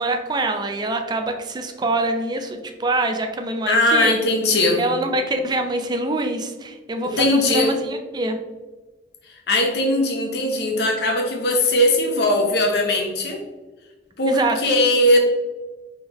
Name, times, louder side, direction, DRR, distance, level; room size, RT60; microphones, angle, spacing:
voice 1, 0.0-4.1 4.8-8.4 14.3-14.6, right 2 dB, 25° right, 5 dB, 0.4 m, -24 dB
voice 2, 3.7-4.8 7.2-7.7 9.5-13.4 14.2-15.2, left 1 dB, 65° left, 2 dB, 0.8 m, -19 dB
3.6 x 3.5 x 3.0 m, 1.2 s
head